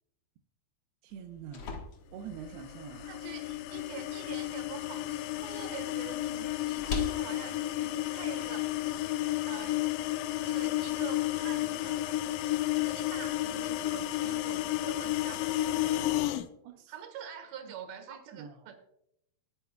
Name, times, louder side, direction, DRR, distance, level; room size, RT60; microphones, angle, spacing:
voice 1, 1.0-1.8 2.1-3.1 16.6-16.9 18.1-18.7, right 7 dB, 90° right, 5 dB, 2.9 m, -45 dB
sound 1, 1.1-9.1, left 2 dB, 65° left, 1.4 m, -44 dB
sound 2, 2.5-16.5, left 15 dB, 90° left, 1.9 m, -32 dB
voice 2, 3.0-9.2 9.5-9.8 10.3-16.3 16.9-18.7, right 7 dB, 70° right, 6 dB, 3.3 m, -46 dB
21.0 x 9.4 x 2.3 m, 0.77 s
omnidirectional pair, 4.5 m